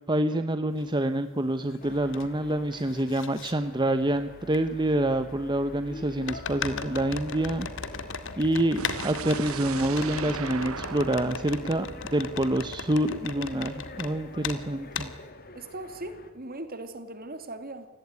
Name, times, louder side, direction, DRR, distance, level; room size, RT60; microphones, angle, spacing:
voice 1, 0.1-7.7 8.4-11.9 12.1-15.1, right 1 dB, 20° right, 0.9 m, -27 dB
sound 1, 0.8-0.9 1.4-2.2 2.5-3.5 4.5-4.6 6.3-14.1 14.4-14.6 14.9-15.1, left 6 dB, 65° left, 2.1 m, -37 dB
sound 2, 1.8-16.3, left 2 dB, 45° left, 2.7 m, -45 dB
sound 3, 8.8-12.7, right 6 dB, 75° right, 0.9 m, -38 dB
voice 2, 15.5-17.9, right 2 dB, 45° right, 2.6 m, -39 dB
29.5 x 16.5 x 9.7 m
head